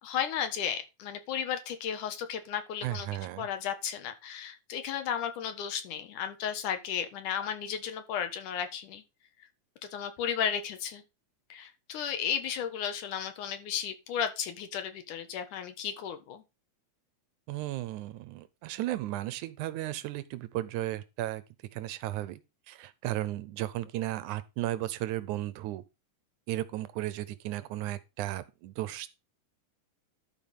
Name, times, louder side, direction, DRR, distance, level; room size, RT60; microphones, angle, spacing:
voice 1, 0.0-3.1 3.4-9.0 9.8-11.0 11.5-16.4, left 8 dB, 90° left, 2.9 m, -34 dB
voice 2, 2.8-3.5 17.5-21.4 21.7-22.4 22.7-25.8 26.5-29.1, right 15 dB, 80° right, 2.2 m, -35 dB
12.0 x 4.8 x 5.4 m
omnidirectional pair, 3.5 m